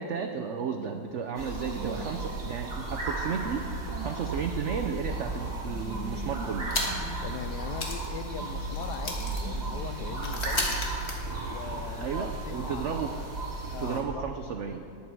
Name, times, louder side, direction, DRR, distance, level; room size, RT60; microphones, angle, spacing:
voice 1, 0.0-6.7 12.0-13.1 13.8-14.8, right 6 dB, 80° right, 5 dB, 0.6 m, -33 dB
sound 1, 1.1-1.2 1.4-1.6 2.1-2.2 2.5-2.6 2.9-3.5 3.9-4.0 4.3-4.4 4.7-4.8 5.1-5.6 6.0-6.2 6.5-6.7 7.0-7.3 7.5-7.7 8.0-14.0, right 9 dB, 65° right, 1.0 m, -47 dB
sound 2, 1.3-14.0, right 2 dB, 50° right, 2.8 m, -34 dB
sound 3, 6.7-7.2 7.5-7.6 7.8-11.9, left 2 dB, 35° left, 1.7 m, -35 dB
voice 2, 7.2-10.8 11.4-13.3 13.7-14.4, left 8 dB, 70° left, 10 dB, 1.1 m, -41 dB
19.0 x 8.4 x 4.7 m, 2.6 s
omnidirectional pair, 2.0 m